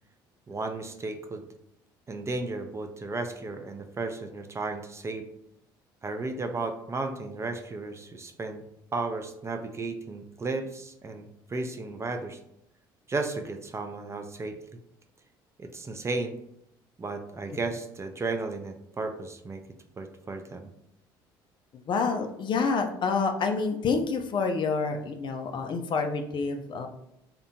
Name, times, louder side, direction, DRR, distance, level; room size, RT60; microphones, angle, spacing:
voice 1, 0.5-1.4 2.1-5.3 6.0-8.6 8.9-12.4 13.1-14.6 15.6-16.4 17.0-19.6 20.0-20.7, right 3 dB, 25° right, 6 dB, 0.4 m, -34 dB
voice 2, 21.7-26.9, left 4 dB, 45° left, 5 dB, 0.4 m, -28 dB
2.7 x 2.1 x 2.7 m, 0.77 s
hypercardioid pair, 65°, 11 cm